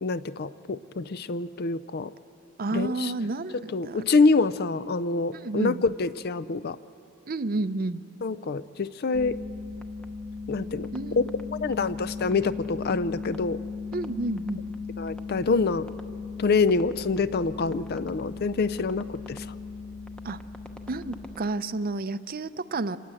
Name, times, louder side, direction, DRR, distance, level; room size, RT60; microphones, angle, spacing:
voice 1, 0.0-2.1 2.7-3.1 3.5-6.8 8.2-9.4 10.5-11.2 11.6-13.6 15.0-15.9 16.4-19.5, left 4 dB, 45° left, 15 dB, 0.4 m, -26 dB
voice 2, 2.6-4.1 5.3-5.8 7.3-8.0 10.9-11.7 13.9-14.6 20.2-20.4 20.9-23.0, right 2 dB, 40° right, 13 dB, 0.5 m, -31 dB
sound 1, 9.1-21.4, left 4 dB, 5° left, 0.8 m, -37 dB
26.5 x 18.5 x 7.7 m, 2.7 s
head